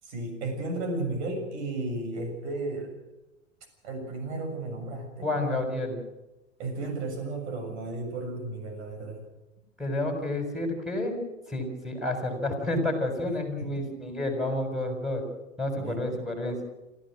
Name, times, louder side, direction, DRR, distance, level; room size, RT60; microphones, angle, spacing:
voice 1, 0.0-2.9 3.8-5.6 6.6-9.2 13.3-13.9 15.7-16.3, right 2 dB, 60° right, 6 dB, 7.2 m, -34 dB
voice 2, 5.2-6.0 9.8-11.1 11.5-15.2 15.6-16.6, left 1 dB, ahead, 3 dB, 6.8 m, -30 dB
27.5 x 15.0 x 6.5 m, 0.98 s
hypercardioid pair, 95°, 37 cm